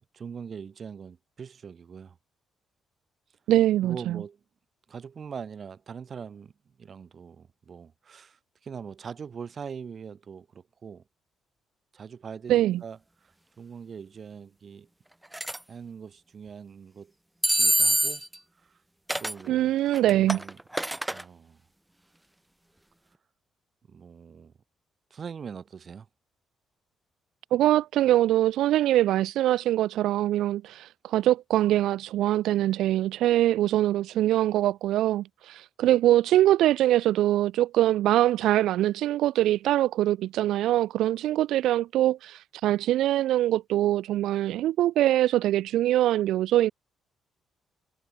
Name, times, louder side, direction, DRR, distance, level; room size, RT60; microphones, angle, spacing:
voice 1, 0.1-2.2 3.8-4.4 4.9-6.5 6.8-11.0 11.9-14.9 15.7-17.1 17.5-18.2 18.6-18.8 19.2-19.8 20.0-20.6 21.1-21.6 23.9-24.5 25.1-26.1, right 6 dB, 45° right, 6.2 m, -42 dB
voice 2, 3.5-4.2 12.5-12.8 19.5-20.4 27.5-46.7, right 13 dB, 85° right, 1.0 m, -23 dB
sound 1, 15.3-15.6 17.4-18.4 19.1-19.4 19.9-21.2, right 1 dB, 5° right, 0.6 m, -25 dB
cardioid pair, 90°, 0 cm